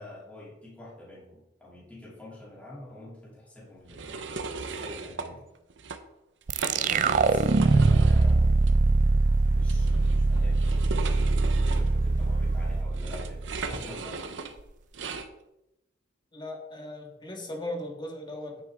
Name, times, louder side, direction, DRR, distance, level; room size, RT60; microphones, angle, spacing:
voice 1, 0.0-4.3 4.6-5.5 7.2-8.5 9.5-10.7 11.2-14.2, left 1 dB, 10° left, -7 dB, 2.7 m, -46 dB
sound 1, 3.9-5.3 5.7-6.0 6.4-8.3 8.6-8.7 9.7-15.3, right 4 dB, 75° right, 0.8 m, -37 dB
sound 2, 6.5-13.8, right 3 dB, 45° right, 0.4 m, -23 dB
sound 3, 7.7-12.8, equal, 80° left, 3.0 m, -40 dB
voice 2, 11.6-11.9 16.3-18.6, left 1 dB, 25° left, 1 dB, 1.7 m, -38 dB
9.8 x 7.6 x 3.6 m, 0.91 s
head